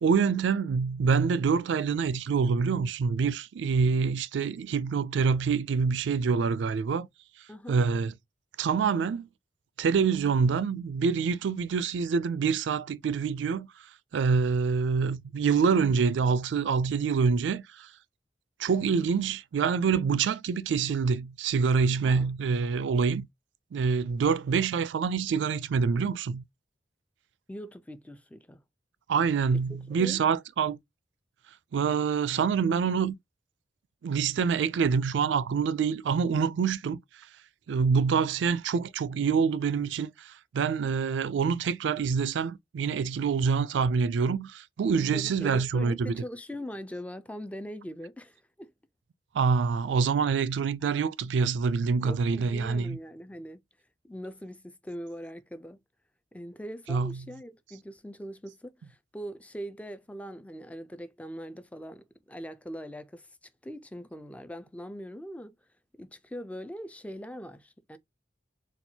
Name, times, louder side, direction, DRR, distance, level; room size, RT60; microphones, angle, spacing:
voice 1, 0.0-7.1 7.7-8.1 8.6-9.3 9.8-13.7 14.1-17.9 18.6-23.3 23.7-26.4 29.1-30.8 31.7-33.2 34.0-37.0 37.7-46.2 49.3-53.0 56.9-57.2, right 5 dB, 75° right, 0.3 m, -26 dB
voice 2, 7.5-7.8 22.0-22.3 27.5-28.6 29.5-29.6 29.9-30.2 45.1-48.7 52.0-53.6 54.0-55.8 56.3-63.3 63.6-65.6 66.0-68.0, equal, 10° left, 0.4 m, -41 dB
4.3 x 2.3 x 2.7 m
head